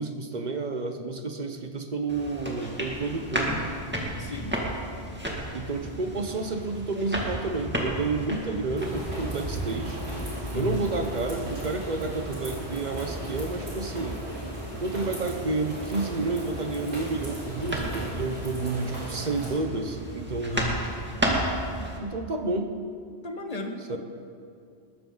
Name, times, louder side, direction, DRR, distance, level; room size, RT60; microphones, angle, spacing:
voice 1, 0.0-3.5 5.5-10.0 10.5-14.2 14.8-20.6 22.0-22.8 23.9-24.0, right 3 dB, 45° right, 6 dB, 1.0 m, -30 dB
sound 1, 2.1-22.0, right 1 dB, 10° right, 2.1 m, -34 dB
voice 2, 4.1-4.6 10.5-10.9 20.5-20.8 23.2-24.0, left 1 dB, 35° left, 3 dB, 1.4 m, -34 dB
sound 2, 8.8-19.5, right 1 dB, 85° right, 3.9 m, -37 dB
21.5 x 13.0 x 3.9 m, 2.3 s
omnidirectional pair, 1.1 m